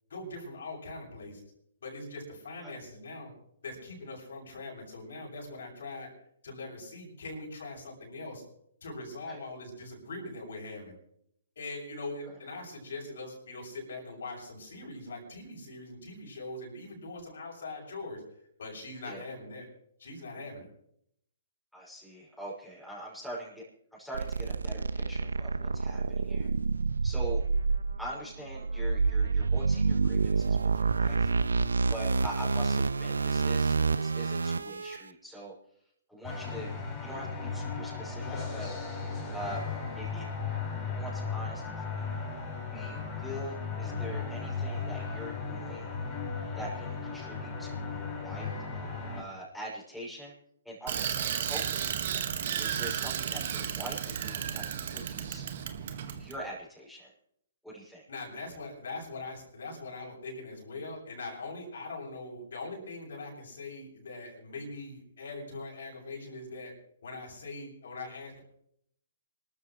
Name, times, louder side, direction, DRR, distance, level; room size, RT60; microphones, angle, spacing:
voice 1, 0.1-1.4 1.8-3.3 3.6-6.1 6.4-8.4 8.8-10.9 11.6-18.2 18.6-19.7 20.0-20.7 58.1-66.7 67.0-68.4, left 2 dB, 70° left, -1 dB, 7.5 m, -42 dB
voice 2, 21.7-23.6 23.9-26.5 27.0-27.4 28.0-31.3 31.9-35.5 36.1-36.7 37.0-38.7 39.3-39.7 40.0-40.3 40.9-42.1 42.7-45.9 46.5-48.5 49.1-50.3 50.6-51.9 52.6-55.4 56.1-57.1 57.6-58.0, right 1 dB, ahead, -7 dB, 6.1 m, -43 dB
sound 1, 24.1-35.0, right 4 dB, 85° right, 0.5 m, -28 dB
sound 2, 36.2-49.2, left 4 dB, 25° left, 5.1 m, -36 dB
Bicycle, 50.9-56.4, right 8 dB, 55° right, 1.7 m, -33 dB
26.5 x 13.5 x 3.2 m, 0.72 s
hypercardioid pair, 130°, 0 cm